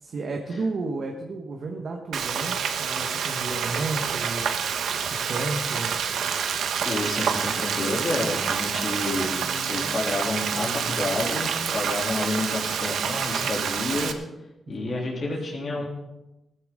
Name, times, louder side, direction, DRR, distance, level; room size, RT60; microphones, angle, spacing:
voice 1, 0.0-4.8 5.1-6.0 9.1-11.0 14.7-15.1 15.8-15.9, right 3 dB, 55° right, 2 dB, 1.5 m, -33 dB
Frying (food), 2.1-14.1, right 7 dB, 80° right, 1.1 m, -28 dB
voice 2, 6.8-9.4 9.7-14.1 14.7-15.9, left 2 dB, 50° left, -3 dB, 3.2 m, -29 dB
16.0 x 14.0 x 3.9 m, 0.97 s
cardioid pair, 90°, 0 cm